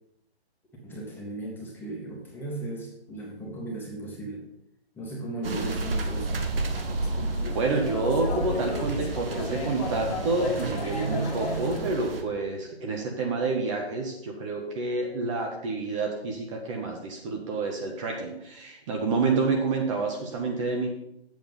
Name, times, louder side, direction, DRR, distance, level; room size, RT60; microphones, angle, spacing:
voice 1, 0.8-4.4 4.9-6.4, right 2 dB, 5° left, -3 dB, 1.6 m, -36 dB
sound 1, 5.4-12.2, right 2 dB, 60° right, 1.5 m, -31 dB
sound 2, 6.8-11.8, left 3 dB, 35° left, 1.9 m, -36 dB
voice 2, 7.5-20.9, right 3 dB, 30° right, 2 dB, 1.4 m, -28 dB
7.8 x 7.2 x 5.5 m, 0.79 s
figure-of-eight pair, 145°, 32 cm